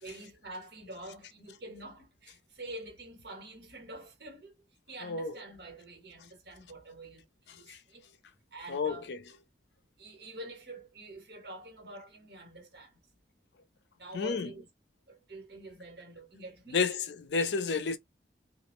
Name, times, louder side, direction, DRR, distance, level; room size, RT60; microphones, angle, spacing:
voice 1, 0.0-4.5 4.9-8.0 8.5-9.1 10.0-13.0 14.0-14.6 15.1-17.0, right 2 dB, 65° right, 1.3 m, -46 dB
voice 2, 5.0-5.3 7.7-7.8 8.7-9.2 14.1-14.5 16.7-18.0, left 5 dB, 75° left, 0.5 m, -31 dB
2.5 x 2.0 x 2.9 m
head